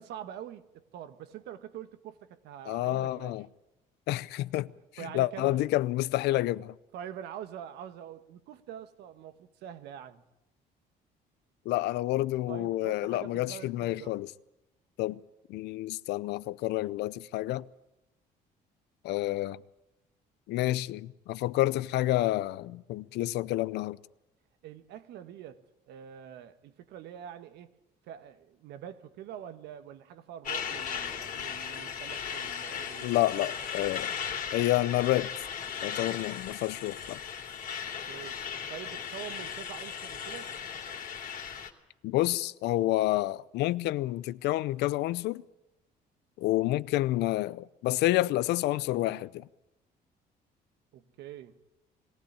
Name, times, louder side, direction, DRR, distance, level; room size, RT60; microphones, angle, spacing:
voice 1, 0.0-3.4 5.0-5.7 6.3-6.5 6.9-10.2 12.5-14.2 24.6-27.7 28.0-33.5 37.8-38.4 38.7-40.5 50.9-51.6, right 10 dB, 80° right, 1.4 m, -45 dB
voice 2, 2.7-3.5 4.1-4.7 5.1-6.7 11.7-14.3 15.0-15.2 15.5-17.7 19.0-19.6 20.5-24.0 33.0-34.1 34.5-35.3 35.8-37.2 42.0-45.4 46.4-49.5, left 16 dB, 80° left, 0.6 m, -29 dB
Truck, 30.4-41.7, left 7 dB, 50° left, 2.7 m, -37 dB
21.0 x 16.0 x 8.7 m
cardioid pair, 110°, 17 cm